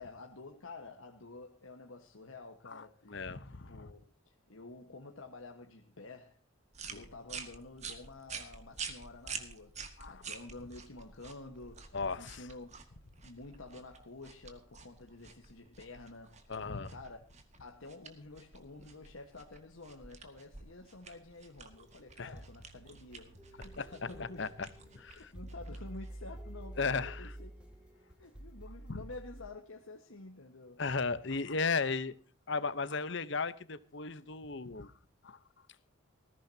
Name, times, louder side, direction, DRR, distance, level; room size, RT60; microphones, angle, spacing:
voice 1, 0.0-3.2 3.5-6.4 6.9-12.7 13.2-17.2 17.6-24.4 25.1-27.5 28.2-30.8, left 2 dB, 90° left, 1.5 m, -50 dB
voice 2, 2.7-3.9 6.9-7.0 10.0-10.1 11.9-12.4 16.5-16.9 22.2-22.3 23.8-24.7 24.9-25.3 26.8-27.3 28.9-29.0 30.8-32.1 32.5-34.9 35.2-35.4, left 4 dB, 60° left, 1.0 m, -36 dB
sound 1, 6.7-26.3, right 5 dB, 35° right, 2.0 m, -49 dB
sound 2, 21.7-29.4, right 1 dB, 5° right, 2.3 m, -49 dB
19.5 x 15.5 x 2.9 m
head